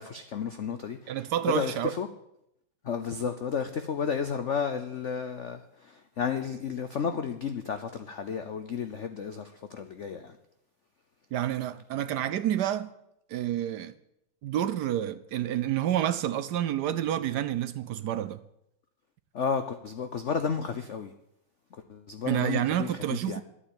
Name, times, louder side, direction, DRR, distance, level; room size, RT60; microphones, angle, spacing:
voice 1, 0.0-2.1 2.8-10.4 19.3-21.1 21.9-23.4, left 6 dB, 85° left, 0.6 m, -32 dB
voice 2, 1.1-1.9 11.3-12.9 13.3-13.9 14.4-18.4 22.3-23.4, right 11 dB, 70° right, 1.0 m, -29 dB
12.0 x 8.9 x 8.8 m
omnidirectional pair, 2.3 m